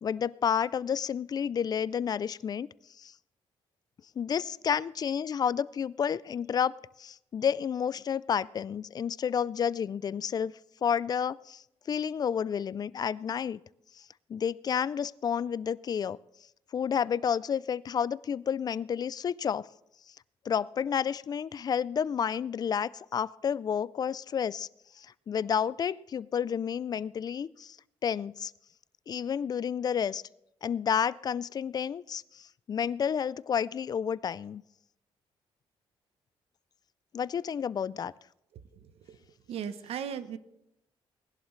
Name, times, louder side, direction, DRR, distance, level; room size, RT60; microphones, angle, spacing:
voice 1, 0.0-2.7 3.0-3.1 4.2-10.5 10.8-13.6 14.3-16.2 16.7-19.7 20.5-24.7 25.0-27.8 28.0-28.5 29.1-30.2 30.6-34.6 37.1-38.1, left 7 dB, 40° left, 20 dB, 0.4 m, -30 dB
voice 2, 38.5-39.2 39.5-40.4, right 8 dB, 75° right, 12 dB, 0.9 m, -38 dB
19.5 x 11.5 x 3.2 m, 0.82 s
cardioid pair, 110°, 10 cm